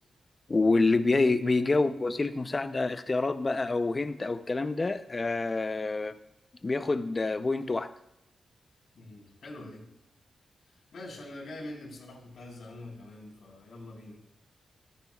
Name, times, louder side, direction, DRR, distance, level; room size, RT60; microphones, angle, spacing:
voice 1, 0.5-6.1 6.6-7.9, left 3 dB, 30° left, 10 dB, 0.6 m, -27 dB
voice 2, 9.0-9.9 10.9-14.2, left 1 dB, 75° left, -1 dB, 3.7 m, -44 dB
13.0 x 9.6 x 2.3 m, 0.87 s
wide cardioid pair, 110°, 0 cm